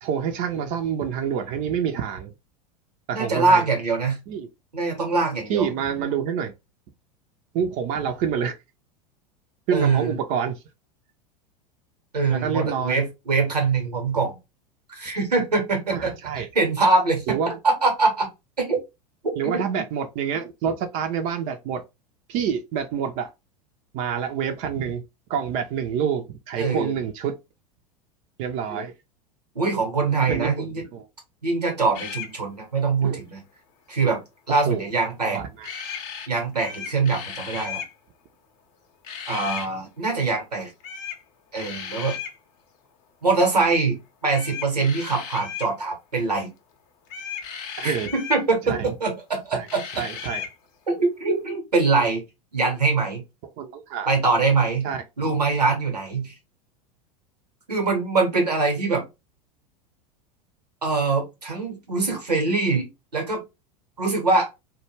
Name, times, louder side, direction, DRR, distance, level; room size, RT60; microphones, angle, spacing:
voice 1, 0.0-2.3 3.1-3.6 4.3-4.5 5.5-6.5 7.5-8.6 9.7-10.6 12.3-13.1 15.9-16.5 17.3-17.6 19.4-21.8 22.3-23.3 23.9-25.0 25.3-27.4 28.4-28.9 30.3-30.7 30.9-31.1 33.0-33.2 34.5-34.8 35.2-35.7 47.8-48.1 48.6-48.9 49.5-49.7 49.9-50.4 53.6-54.1 54.8-55.0, right 7 dB, 40° right, 0.4 m, -27 dB
voice 2, 3.1-4.2 4.7-5.7 9.7-10.1 12.1-14.4 14.9-16.1 16.5-17.4 17.6-18.3 18.6-18.8 19.4-19.5 26.6-26.9 28.7-28.8 29.5-30.8 31.4-33.4 33.9-34.2 34.5-35.4 36.3-37.8 39.3-40.7 41.5-42.1 43.2-46.5 47.8-49.8 50.9-52.2 52.5-53.2 54.1-54.9 55.2-56.3 57.7-59.0 60.8-63.4 64.0-64.5, right 3 dB, 85° right, 0.9 m, -23 dB
sound 1, 31.9-32.3 35.6-36.3 36.5-37.9 39.0-39.7 40.8-41.2 41.5-42.4 44.3-45.7 47.1-48.4 49.7-50.5, left 7 dB, 45° left, 0.6 m, -35 dB
2.2 x 2.1 x 3.0 m
figure-of-eight pair, 85°, 20 cm